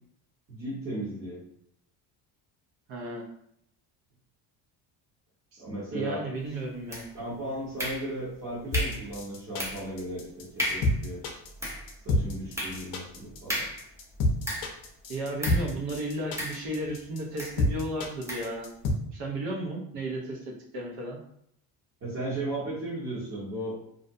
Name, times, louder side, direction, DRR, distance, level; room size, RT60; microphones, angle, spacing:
voice 1, 0.5-1.4 5.6-6.2 7.1-11.2 12.0-13.7 22.0-23.7, right 1 dB, 35° right, -9 dB, 1.1 m, -35 dB
voice 2, 2.9-3.3 5.5-5.6 5.9-7.0 15.1-18.7 19.1-21.2, right 1 dB, 60° right, -1 dB, 0.8 m, -34 dB
sound 1, 6.9-7.3 7.8-8.3 8.7-9.1 9.6-9.9 10.2-10.3 10.6-11.0 11.4-14.9 15.4-15.7 16.4-17.0 17.4-17.6 18.3-18.6, equal, 5° right, 0.4 m, -35 dB
sound 2, 8.7-18.9, left 1 dB, 55° left, 0.6 m, -28 dB
2.5 x 2.2 x 2.5 m, 0.73 s
cardioid pair, 130°, 42 cm